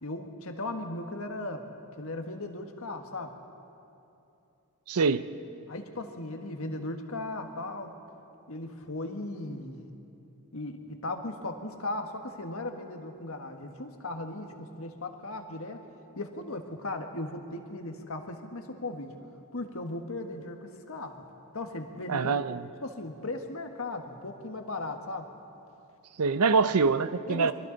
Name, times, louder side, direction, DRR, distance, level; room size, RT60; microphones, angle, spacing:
voice 1, 0.0-1.7 2.0-3.4 5.7-7.9 8.5-9.9 10.5-15.8 16.1-19.2 19.5-21.2 21.5-22.4 22.8-25.3 27.3-27.5, left 2 dB, 65° left, 1.6 m, -37 dB
voice 2, 4.9-5.3 22.1-22.6 26.2-27.5, right 4 dB, 90° right, 0.6 m, -24 dB
29.0 x 23.0 x 4.0 m
head